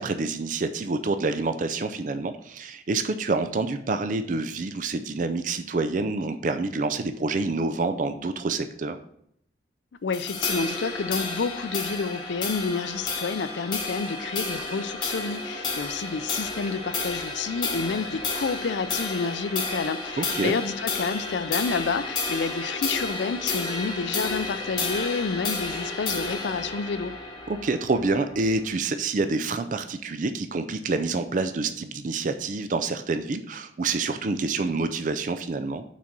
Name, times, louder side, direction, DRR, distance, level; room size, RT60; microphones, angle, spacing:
voice 1, 0.0-9.0 20.2-20.5 27.5-35.8, right 3 dB, 45° right, 9 dB, 0.4 m, -27 dB
voice 2, 10.0-27.1, left 4 dB, 80° left, 13 dB, 0.5 m, -29 dB
sound 1, 10.1-28.7, left 3 dB, 25° left, 1.0 m, -31 dB
6.1 x 4.2 x 5.9 m, 0.71 s
head